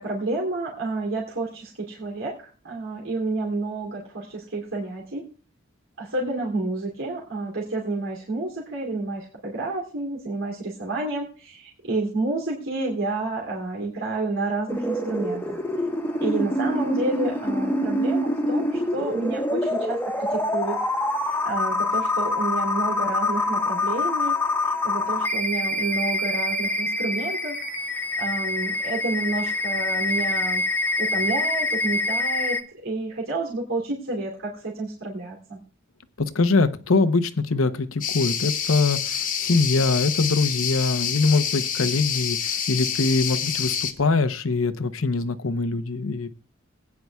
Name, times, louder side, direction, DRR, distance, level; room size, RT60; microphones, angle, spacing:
voice 1, 0.0-5.3 6.0-15.6 16.2-20.8 21.4-24.4 24.8-27.6 28.2-30.6 31.0-35.6, right 2 dB, 85° right, -2 dB, 2.8 m, -30 dB
sound 1, 14.7-32.6, left 2 dB, 10° left, 1.1 m, -25 dB
voice 2, 36.2-46.3, left 3 dB, 85° left, 11 dB, 0.8 m, -23 dB
sound 2, 38.0-43.9, left 8 dB, 45° left, 1.1 m, -27 dB
20.5 x 9.5 x 2.3 m, 0.37 s
head